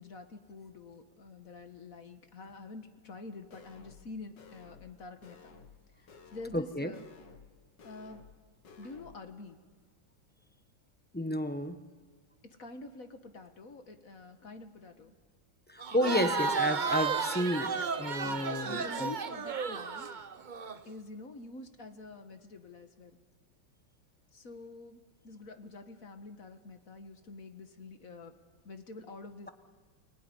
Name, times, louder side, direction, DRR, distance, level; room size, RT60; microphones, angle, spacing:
voice 1, 0.0-5.5 6.0-7.0 7.8-8.3 8.8-9.6 12.4-15.1 15.8-16.4 16.6-16.7 18.2-20.2 20.9-23.2 24.3-28.4 28.6-29.5, left 3 dB, 45° left, 7 dB, 1.8 m, -47 dB
sound 1, 3.5-4.1 4.4-4.9 5.2-5.8 6.1-6.7 6.9-7.5 7.8-8.4 8.6-9.2, left 4 dB, 65° left, 2.3 m, -54 dB
voice 2, 6.5-6.9 11.1-11.8 15.7-19.1, left 1 dB, 5° left, 8 dB, 0.8 m, -31 dB
Crowd, 15.8-20.8, right 5 dB, 45° right, 0.6 m, -33 dB
29.0 x 18.5 x 9.9 m, 1.5 s
omnidirectional pair, 2.1 m